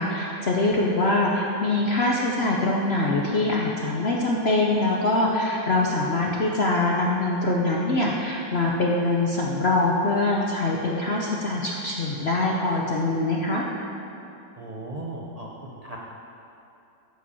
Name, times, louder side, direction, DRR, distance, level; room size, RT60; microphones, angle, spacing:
voice 1, 0.0-13.7, left 2 dB, 60° left, -2 dB, 0.6 m, -23 dB
voice 2, 14.6-16.0, right 2 dB, 65° right, -3 dB, 0.3 m, -37 dB
10.0 x 5.1 x 6.9 m, 2.8 s
omnidirectional pair, 2.0 m